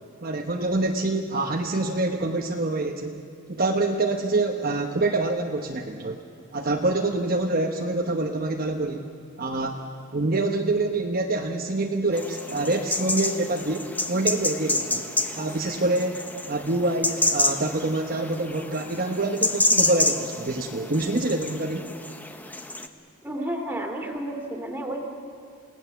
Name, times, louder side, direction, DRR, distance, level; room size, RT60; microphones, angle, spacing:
voice 1, 0.2-6.2 6.5-9.1 9.4-9.8 10.1-15.0 15.4-16.1 16.5-21.9, right 2 dB, 40° right, 2 dB, 1.0 m, -26 dB
sound 1, 12.1-22.9, left 2 dB, 10° left, 0.9 m, -28 dB
voice 2, 23.2-25.0, right 1 dB, 10° right, 1 dB, 2.5 m, -31 dB
28.5 x 18.0 x 7.1 m, 2.4 s
head